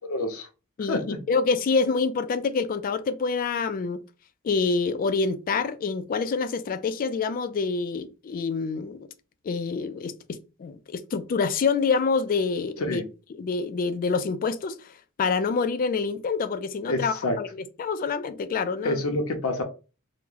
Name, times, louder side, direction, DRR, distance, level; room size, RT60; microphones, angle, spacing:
voice 1, 0.1-0.5 0.9-1.2 12.8-13.0 16.9-17.4 18.8-19.6, left 2 dB, 75° left, 0.7 m, -27 dB
voice 2, 0.8-4.0 4.4-9.1 9.4-13.0 13.3-14.9 15.2-17.5 17.8-19.0, left 4 dB, 40° left, 0.3 m, -26 dB
2.9 x 2.1 x 3.7 m
head